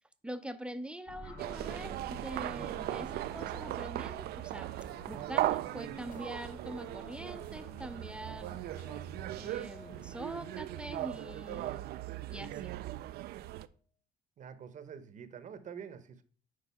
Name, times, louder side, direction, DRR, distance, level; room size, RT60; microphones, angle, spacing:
voice 1, 0.2-4.7 5.1-8.6 9.3-11.9 12.3-12.7, right 1 dB, 5° right, 0.6 m, -44 dB
sound 1, 1.1-9.1, equal, 80° left, 2.4 m, -51 dB
sound 2, 1.4-13.7, right 15 dB, 70° right, 0.4 m, -38 dB
sound 3, 4.8-13.5, left 6 dB, 50° left, 0.7 m, -58 dB
voice 2, 14.4-16.2, right 7 dB, 50° right, 0.9 m, -46 dB
6.4 x 4.7 x 5.5 m
cardioid pair, 110°, 17 cm